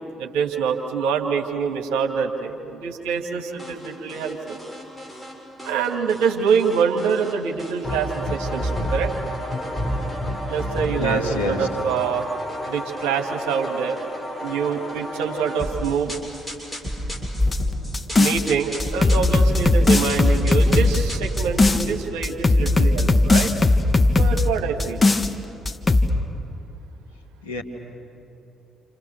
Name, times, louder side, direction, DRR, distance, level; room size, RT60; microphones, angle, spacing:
voice 1, 0.2-4.6 5.6-9.1 10.5-12.3 12.7-14.0 14.4-16.2 18.2-23.5 24.2-25.0, right 6 dB, 70° right, 3 dB, 2.0 m, -25 dB
sound 1, 3.6-5.3 5.6-7.3 7.6-22.0, equal, 5° left, 7.0 m, -30 dB
voice 2, 11.0-11.7 27.4-27.6, left 2 dB, 85° left, 0 dB, 1.9 m, -27 dB
sound 2, 17.4-18.4 18.8-21.9 22.2-24.4 24.8-25.3 25.7-26.1, left 2 dB, 25° left, 1.7 m, -18 dB
29.0 x 28.5 x 7.0 m, 2.9 s
figure-of-eight pair, 45°, 0 cm